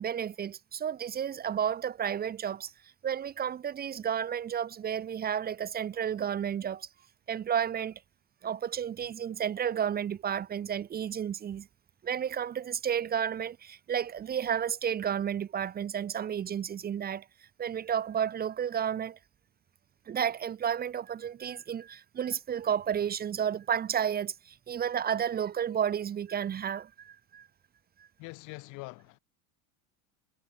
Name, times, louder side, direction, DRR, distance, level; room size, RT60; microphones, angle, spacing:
voice 1, 0.0-2.7 3.0-6.9 7.3-8.0 8.4-11.7 12.0-17.3 17.6-19.2 20.1-27.5, right 8 dB, 25° right, 1.8 m, -32 dB
voice 2, 28.2-29.2, left 26 dB, 60° left, 7.4 m, -44 dB
cardioid pair, 150°, 35 cm